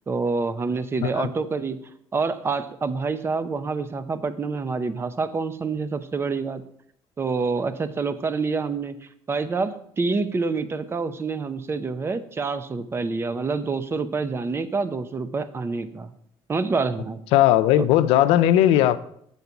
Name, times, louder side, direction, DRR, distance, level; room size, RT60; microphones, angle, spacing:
voice 1, 0.1-1.8 2.1-6.6 7.2-9.0 9.3-16.1 16.5-17.2 17.8-17.9, right 4 dB, 25° right, 11 dB, 0.7 m, -27 dB
voice 2, 17.3-19.0, left 13 dB, 85° left, 13 dB, 0.5 m, -18 dB
8.2 x 4.1 x 7.0 m, 0.69 s
cardioid pair, 115°, 10 cm